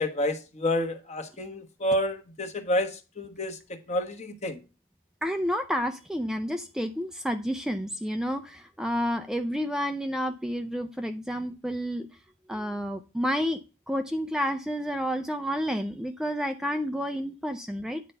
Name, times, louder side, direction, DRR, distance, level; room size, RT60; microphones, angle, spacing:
voice 1, 0.0-2.9 3.2-3.6 3.9-4.6, left 1 dB, 35° left, 1.2 m, -29 dB
voice 2, 5.2-12.1 12.5-13.6 13.9-18.0, equal, 5° right, 0.5 m, -30 dB
9.6 x 4.6 x 6.7 m
head